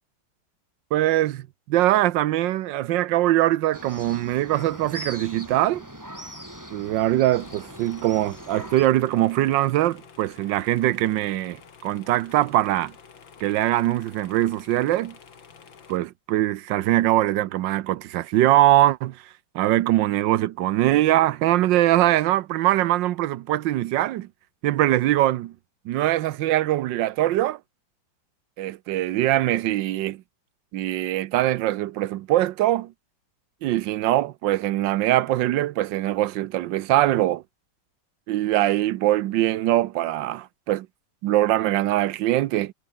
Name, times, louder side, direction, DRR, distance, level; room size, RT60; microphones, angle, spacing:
voice 1, 0.9-5.9 6.7-12.9 13.4-15.1 15.9-19.2 19.5-24.3 24.6-25.5 25.9-27.6 28.6-30.2 30.7-32.9 33.6-37.4 38.3-40.9 41.2-42.7, right 14 dB, 80° right, 1.4 m, -22 dB
sound 1, 3.7-8.9, equal, 10° right, 7.1 m, -41 dB
sound 2, 7.4-16.0, left 6 dB, 90° left, 3.0 m, -49 dB
omnidirectional pair, 2.0 m